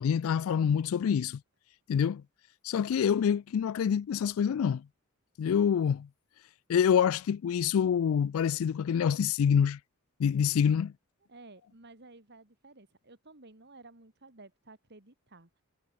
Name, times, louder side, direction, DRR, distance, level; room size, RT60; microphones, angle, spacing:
voice 1, 0.0-1.4 1.9-2.2 2.6-4.8 5.4-6.1 6.7-9.8 10.2-10.9, left 7 dB, 70° left, 0.3 m, -26 dB
voice 2, 11.3-15.6, right 2 dB, 50° right, 3.1 m, -54 dB
head